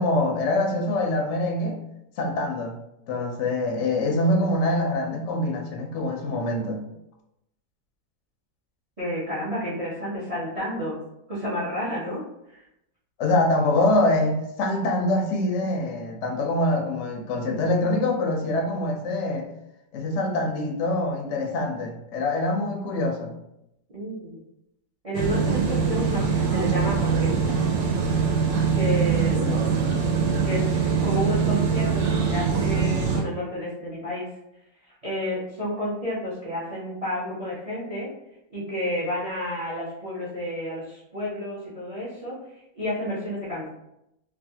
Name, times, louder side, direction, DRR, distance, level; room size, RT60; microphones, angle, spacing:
voice 1, 0.0-1.8 2.2-2.7 3.1-6.8 13.2-19.5 19.9-23.3 29.4-29.7, left 2 dB, 65° left, 1 dB, 0.7 m, -24 dB
voice 2, 9.0-11.0 11.3-12.2 12.5-12.6 23.9-24.4 25.0-27.6 28.7-29.5 30.4-34.3 35.0-38.1 38.5-42.4 42.8-43.7, equal, 45° right, -7 dB, 0.4 m, -30 dB
sound 1, 25.1-33.2, right 6 dB, 85° right, 1.3 m, -23 dB
3.1 x 2.4 x 2.7 m, 0.83 s
omnidirectional pair, 1.9 m